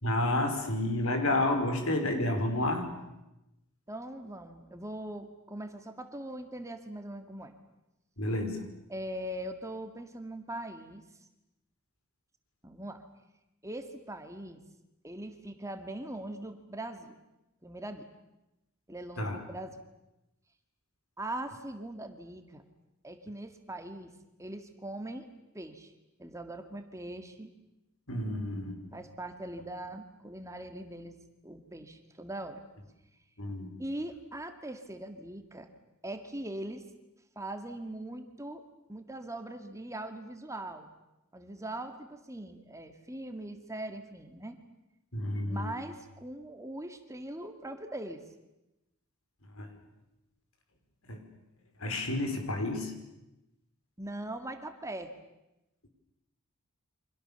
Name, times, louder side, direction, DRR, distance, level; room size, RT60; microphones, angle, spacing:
voice 1, 0.0-2.9 8.2-8.7 19.2-19.4 28.1-28.8 33.4-33.8 45.1-45.7 49.5-49.7 51.1-51.2 51.8-52.9, left 1 dB, 70° left, 6 dB, 5.2 m, -30 dB
voice 2, 3.9-7.5 8.9-11.0 12.6-13.0 13.6-14.6 15.0-17.2 17.6-18.1 18.9-19.8 21.2-22.7 23.0-24.1 24.4-25.3 25.5-25.9 26.2-27.5 28.9-32.6 33.8-35.7 36.0-36.8 37.4-38.6 38.9-40.9 41.3-44.6 45.5-48.2 54.0-55.1, right 1 dB, 15° right, 7 dB, 2.0 m, -41 dB
29.5 x 25.5 x 7.1 m, 0.94 s
head